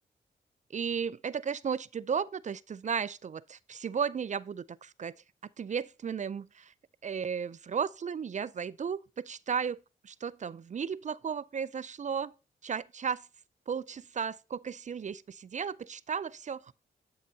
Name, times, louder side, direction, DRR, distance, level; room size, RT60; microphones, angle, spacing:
voice 1, 0.7-5.1 5.6-6.7 7.0-9.8 10.0-12.3 12.6-13.3 13.7-16.7, right 6 dB, 40° right, 0.4 m, -34 dB
10.5 x 5.6 x 2.7 m
supercardioid pair, 45°, 20 cm